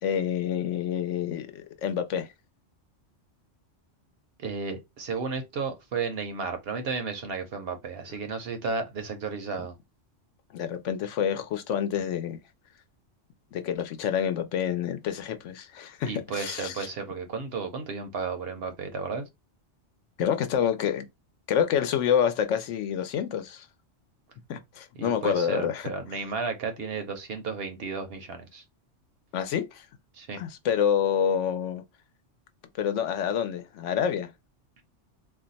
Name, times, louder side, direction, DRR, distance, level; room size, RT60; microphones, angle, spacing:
voice 1, 0.0-2.3 10.5-12.4 13.5-16.9 20.2-21.1 21.5-23.7 24.5-25.9 29.3-29.9 30.4-31.8 32.8-34.3, left 8 dB, 80° left, 0.9 m, -27 dB
voice 2, 4.4-9.7 16.1-19.3 25.0-28.6 30.1-30.4, right 5 dB, 60° right, 0.8 m, -33 dB
2.5 x 2.3 x 3.9 m
omnidirectional pair, 1.3 m